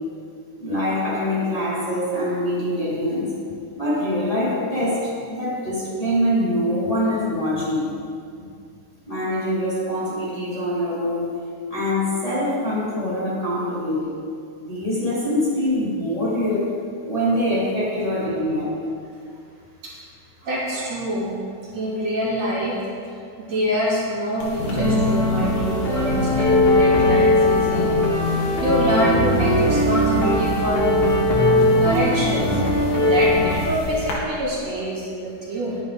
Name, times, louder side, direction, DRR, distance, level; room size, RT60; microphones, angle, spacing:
voice 1, 0.6-3.3 3.8-7.9 9.1-11.4 11.7-14.2 14.7-16.7 17.0-18.7, left 1 dB, 10° left, -10 dB, 3.7 m, -24 dB
voice 2, 20.4-21.3 21.7-22.8 23.4-27.9 28.6-30.8 31.8-32.6 33.1-35.8, equal, 55° right, -7 dB, 3.7 m, -25 dB
sound 1, 24.4-34.1, left 1 dB, 80° left, 3.9 m, -30 dB
sound 2, 24.8-33.5, left 1 dB, 45° left, 0.7 m, -19 dB
20.0 x 10.5 x 3.6 m, 2.3 s
omnidirectional pair, 3.6 m